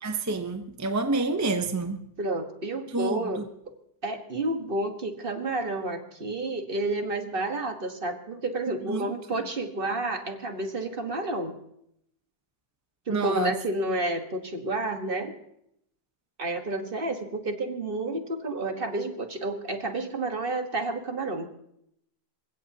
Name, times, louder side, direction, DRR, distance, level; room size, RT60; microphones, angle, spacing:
voice 1, 0.0-2.0 2.9-3.4 8.9-9.0 13.1-13.5, right 3 dB, 15° right, 6 dB, 0.5 m, -28 dB
voice 2, 2.2-3.4 4.0-11.5 13.1-15.3 16.4-21.5, right 2 dB, 35° right, 5 dB, 1.6 m, -30 dB
28.0 x 16.0 x 2.9 m, 0.74 s
omnidirectional pair, 1.8 m